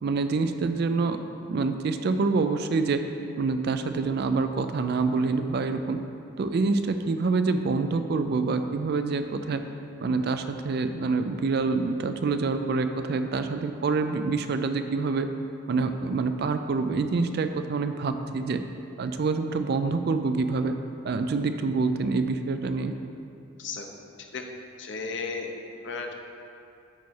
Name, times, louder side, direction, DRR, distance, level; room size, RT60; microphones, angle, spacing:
voice 1, 0.0-1.2 1.5-3.0 3.4-6.0 6.4-9.6 10.0-15.3 15.7-18.6 19.0-20.7 21.0-22.9, right 4 dB, 50° right, 8 dB, 0.3 m, -26 dB
voice 2, 24.8-25.5 25.8-26.1, left 4 dB, 55° left, 3 dB, 0.7 m, -34 dB
9.0 x 4.1 x 4.6 m, 2.6 s
head